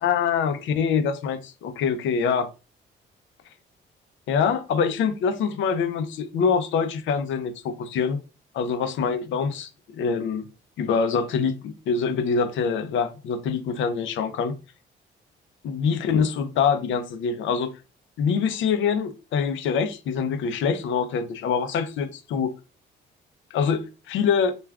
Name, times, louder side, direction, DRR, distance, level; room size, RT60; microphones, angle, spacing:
voice 1, 0.0-2.5 4.3-8.2 8.5-10.4 10.8-14.6 15.6-17.7 18.2-22.5 23.5-24.5, left 6 dB, 75° left, 0.5 m, -25 dB
2.4 x 2.3 x 3.4 m
cardioid pair, 90°, 20 cm